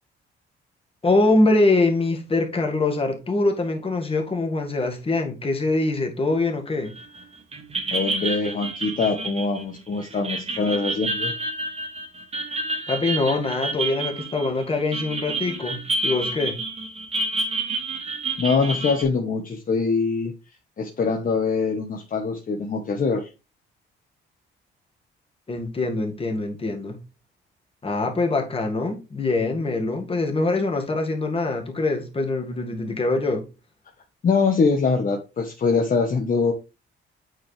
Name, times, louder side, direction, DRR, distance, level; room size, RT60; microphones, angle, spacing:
voice 1, 1.0-6.9 12.9-16.6 25.5-27.0 27.8-33.4, left 2 dB, 30° left, 1.9 m, -23 dB
sound 1, 7.0-7.2 7.5-19.0, right 2 dB, 30° right, 2.1 m, -29 dB
voice 2, 7.9-11.3 18.4-20.3 20.8-23.3 34.2-36.5, left 4 dB, 45° left, 1.2 m, -23 dB
8.6 x 4.6 x 3.3 m
cardioid pair, 90°, 20 cm